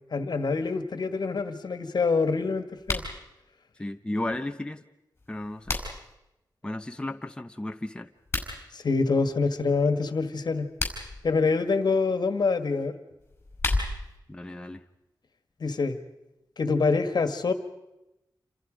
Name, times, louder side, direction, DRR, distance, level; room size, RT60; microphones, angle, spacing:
voice 1, 0.1-3.0 8.7-10.7 11.2-12.9 15.6-16.0 16.6-17.5, left 4 dB, 65° left, 9 dB, 1.7 m, -25 dB
sound 1, 2.8-3.1 5.2-6.1 8.2-8.5 10.6-11.2 13.2-14.2, left 2 dB, 30° left, 5.4 m, -31 dB
voice 2, 3.8-4.8 5.3-5.8 6.6-8.1 14.3-14.8, left 1 dB, 10° left, 6 dB, 0.8 m, -34 dB
28.5 x 26.5 x 5.2 m, 0.93 s
wide cardioid pair, 120°, 8 cm